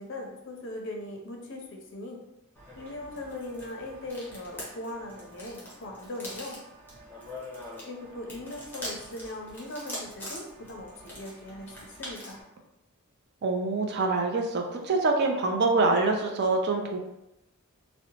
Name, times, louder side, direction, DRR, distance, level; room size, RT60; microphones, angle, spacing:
voice 1, 0.0-2.2 2.8-6.6 7.8-12.4, left 1 dB, 55° left, 2 dB, 0.5 m, -39 dB
sound 1, 2.6-12.4, left 1 dB, 10° left, 0.8 m, -43 dB
voice 2, 13.4-17.0, right 3 dB, 50° right, 3 dB, 0.4 m, -25 dB
2.7 x 2.1 x 2.8 m, 0.88 s
head